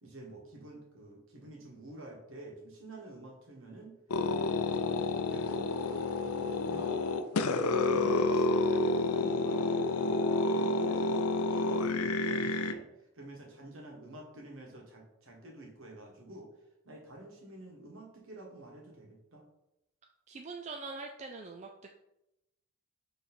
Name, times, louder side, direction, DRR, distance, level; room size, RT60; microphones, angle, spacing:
voice 1, 0.0-4.0 4.2-7.0 7.4-11.1 11.4-12.9 13.1-16.5 16.8-19.4, right 1 dB, 60° right, 0 dB, 1.5 m, -49 dB
sound 1, 4.1-12.7, left 3 dB, 85° left, 0.5 m, -29 dB
voice 2, 20.3-21.7, right 3 dB, 30° right, 3 dB, 0.4 m, -42 dB
6.8 x 3.2 x 4.3 m, 0.88 s
head